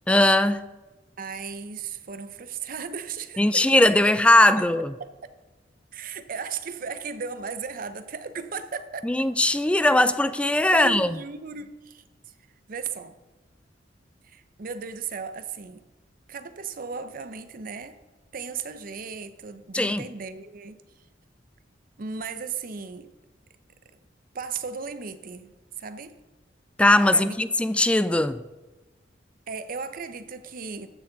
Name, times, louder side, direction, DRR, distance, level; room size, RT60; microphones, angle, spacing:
voice 1, 0.1-0.7 3.4-4.9 9.0-11.2 19.7-20.1 26.8-28.4, left 1 dB, 5° left, 0.3 m, -20 dB
voice 2, 1.2-3.8 4.6-4.7 5.0-5.1 5.9-9.1 10.7-12.0 12.7-13.2 14.2-15.8 16.3-18.0 18.3-20.8 22.0-23.1 24.3-26.2 27.1-27.5 29.5-30.9, right 5 dB, 50° right, 0.6 m, -36 dB
14.0 x 6.9 x 3.9 m
head